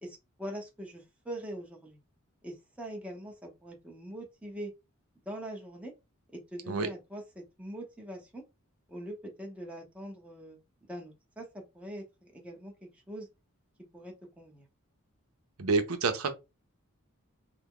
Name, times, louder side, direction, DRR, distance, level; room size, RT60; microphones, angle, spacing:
voice 1, 0.0-2.0 2.4-4.7 5.3-5.9 6.5-8.4 8.9-10.6 10.9-12.0 12.3-13.3 13.9-14.7, right 1 dB, 5° right, 0.9 m, -42 dB
voice 2, 15.6-16.3, right 4 dB, 80° right, 0.7 m, -28 dB
3.4 x 2.1 x 3.7 m
head